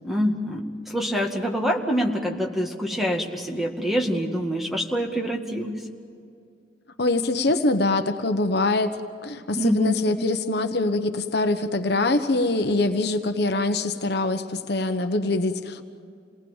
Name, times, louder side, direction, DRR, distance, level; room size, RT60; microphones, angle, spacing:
voice 1, 0.0-5.8 9.6-10.0, equal, ahead, 1 dB, 2.0 m, -25 dB
voice 2, 7.0-9.0 9.2-15.8, left 2 dB, 60° left, 7 dB, 1.2 m, -24 dB
28.5 x 19.0 x 7.4 m, 2.4 s
head